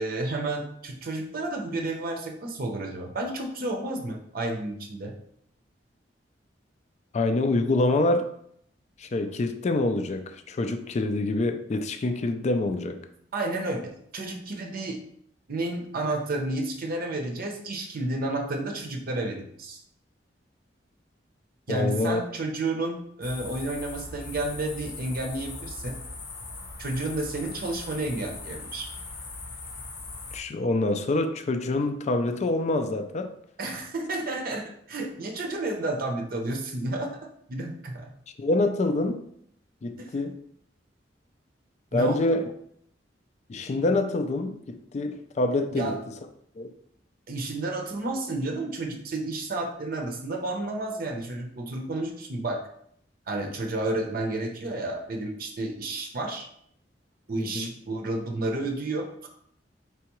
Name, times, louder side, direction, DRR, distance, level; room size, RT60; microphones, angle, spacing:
voice 1, 0.0-5.1 13.3-15.0 15.5-19.8 21.7-26.0 26.8-28.9 33.6-37.2 37.5-38.1 40.0-40.1 41.9-42.2 45.7-46.0 47.3-52.6 53.3-56.5 57.3-59.3, right 2 dB, 55° right, 0.6 m, -31 dB
voice 2, 7.1-8.3 9.0-13.0 21.7-22.2 30.3-33.3 38.4-39.3 39.8-40.4 41.9-42.4 43.5-46.0 46.6-46.7 57.4-57.7, left 2 dB, 40° left, 0.4 m, -26 dB
sound 1, 23.2-30.4, left 3 dB, 80° left, 0.9 m, -40 dB
4.6 x 3.4 x 3.0 m
head